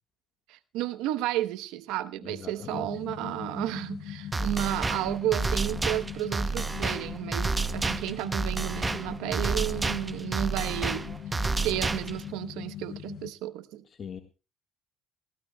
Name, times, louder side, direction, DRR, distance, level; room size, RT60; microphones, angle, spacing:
voice 1, 0.5-11.1 11.4-13.8, right 14 dB, 90° right, 0.9 m, -32 dB
voice 2, 2.2-2.9 14.0-14.2, left 7 dB, 45° left, 1.5 m, -41 dB
sound 1, 2.6-13.3, left 10 dB, 70° left, 0.7 m, -41 dB
sound 2, 4.3-12.3, right 3 dB, 20° right, 0.7 m, -30 dB
23.0 x 15.5 x 2.2 m
cardioid pair, 95°, 0 cm